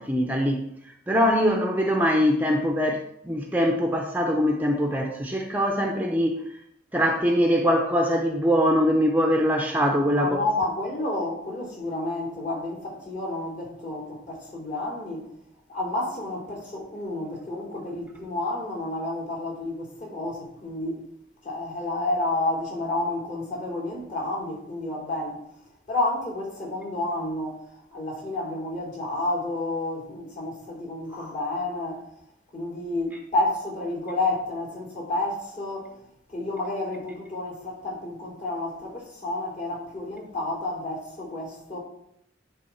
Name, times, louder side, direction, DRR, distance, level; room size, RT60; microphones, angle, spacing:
voice 1, 0.0-6.5 6.9-10.4, equal, 10° right, 0.6 m, -23 dB
voice 2, 10.2-15.3 15.7-21.0 21.4-25.4 25.9-32.0 32.5-36.0 36.3-41.8, left 2 dB, 45° left, 3.2 m, -30 dB
10.5 x 3.6 x 5.6 m
head